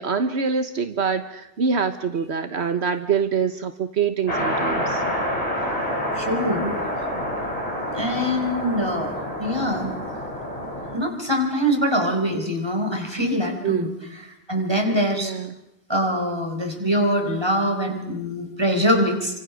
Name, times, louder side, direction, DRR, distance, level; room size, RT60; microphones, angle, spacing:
voice 1, 0.0-5.0 13.6-13.9 15.2-15.5, right 6 dB, 80° right, 8 dB, 1.5 m, -25 dB
sound 1, 4.3-11.0, equal, 35° left, 7.2 m, -27 dB
voice 2, 6.1-6.8 7.9-9.1 9.4-9.9 10.9-13.9 14.5-15.3 15.9-19.4, equal, 25° right, 3 dB, 4.7 m, -23 dB
29.5 x 25.5 x 6.4 m, 0.87 s
omnidirectional pair, 1.1 m